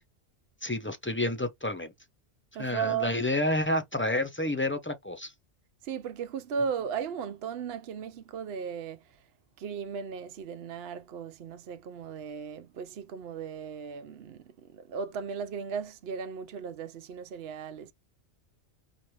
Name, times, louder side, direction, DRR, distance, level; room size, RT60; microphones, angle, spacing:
voice 1, 0.6-1.9 2.6-5.3, left 1 dB, 10° left, 0.7 m, -29 dB
voice 2, 2.5-3.1 5.8-9.0 9.6-17.9, right 7 dB, 65° right, 0.9 m, -36 dB
5.9 x 2.5 x 3.2 m
omnidirectional pair, 1.2 m